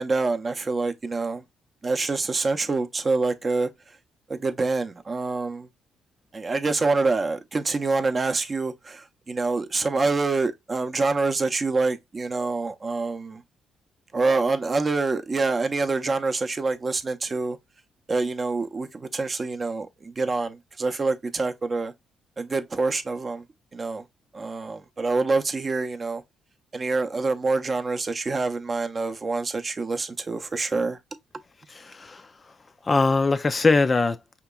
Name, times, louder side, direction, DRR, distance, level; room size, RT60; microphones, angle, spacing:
voice 1, 0.0-1.4 1.8-4.0 4.3-5.7 6.3-13.4 14.1-17.6 18.1-21.9 22.4-23.4 23.7-24.1 24.3-26.2 26.7-31.0, right 3 dB, 30° right, 0.5 m, -26 dB
voice 2, 31.7-32.5 32.8-34.2, left 3 dB, 30° left, 0.3 m, -22 dB
4.9 x 2.9 x 2.2 m
cardioid pair, 90°, 0 cm